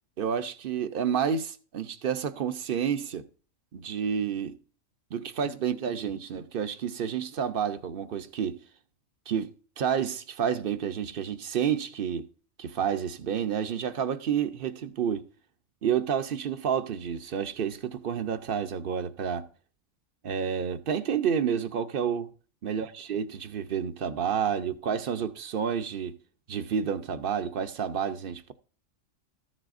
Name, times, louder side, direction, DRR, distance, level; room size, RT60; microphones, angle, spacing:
voice 1, 0.2-3.2 3.7-4.6 5.1-8.6 9.3-9.5 9.8-12.3 12.6-15.3 15.8-19.5 20.2-22.3 22.6-26.2 26.5-28.5, right 8 dB, 50° right, 0.8 m, -30 dB
13.5 x 7.6 x 2.5 m
omnidirectional pair, 1.4 m